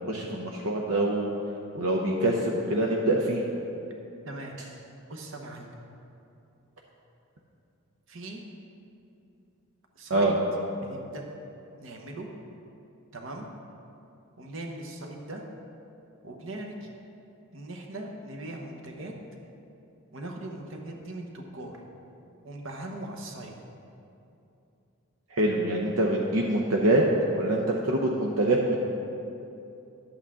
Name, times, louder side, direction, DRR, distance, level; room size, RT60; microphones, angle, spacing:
voice 1, 0.1-1.3 1.7-3.4 10.1-10.4 25.3-27.0 27.3-28.8, right 1 dB, 75° right, -1 dB, 0.7 m, -25 dB
voice 2, 5.1-5.7 8.1-8.4 9.9-10.3 10.8-11.2 11.8-12.3 13.1-13.5 14.4-15.4 16.2-16.9 17.5-19.1 20.1-21.8 22.4-23.5, right 1 dB, 60° right, 2 dB, 1.0 m, -39 dB
11.0 x 8.2 x 3.7 m, 2.7 s
head